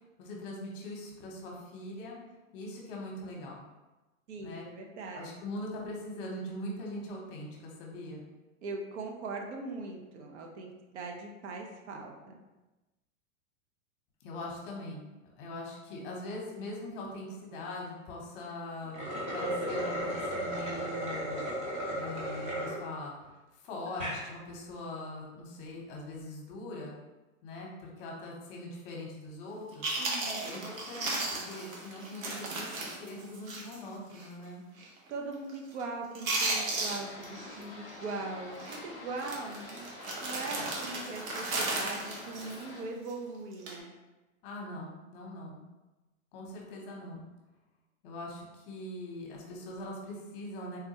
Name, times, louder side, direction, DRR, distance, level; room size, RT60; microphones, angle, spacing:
voice 1, 0.2-2.2 2.5-3.7 4.4-4.6 5.1-8.3 14.2-21.4 21.9-26.9 27.4-29.9 30.4-34.6 44.4-45.6 46.3-47.2 48.0-50.8, left 1 dB, 40° left, -2 dB, 0.8 m, -42 dB
voice 2, 4.3-5.3 8.6-12.4 30.0-30.5 35.1-39.9 40.2-43.9, right 3 dB, 55° right, 2 dB, 0.6 m, -40 dB
sound 1, 18.8-22.8 23.3-23.4 23.9-24.2, right 1 dB, 15° right, 0.9 m, -34 dB
Chewing mastication, 29.5-29.6 29.8-33.9 34.1-34.3 34.8-35.1 35.3-35.8 36.1-37.6 37.9-38.2 38.6-38.8 39.2-43.1 43.5-43.8, right 2 dB, 80° right, 0.9 m, -35 dB
sound 2, 36.7-42.8, left 2 dB, 20° left, 0.3 m, -47 dB
3.5 x 2.2 x 2.8 m, 1.1 s
hypercardioid pair, 140°, 40 cm